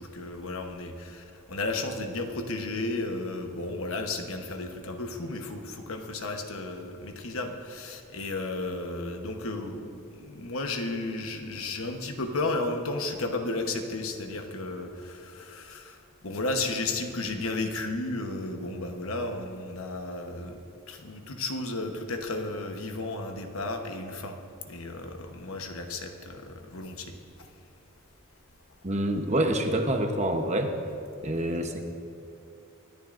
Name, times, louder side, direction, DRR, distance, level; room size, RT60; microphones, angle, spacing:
voice 1, 0.0-16.0 16.2-20.6 20.9-24.4 24.6-27.1 31.6-31.8, left 2 dB, 65° left, 5 dB, 1.1 m, -33 dB
voice 2, 28.8-30.7 31.2-31.8, right 1 dB, 30° right, 4 dB, 0.9 m, -26 dB
25.0 x 10.5 x 2.6 m, 2.6 s
head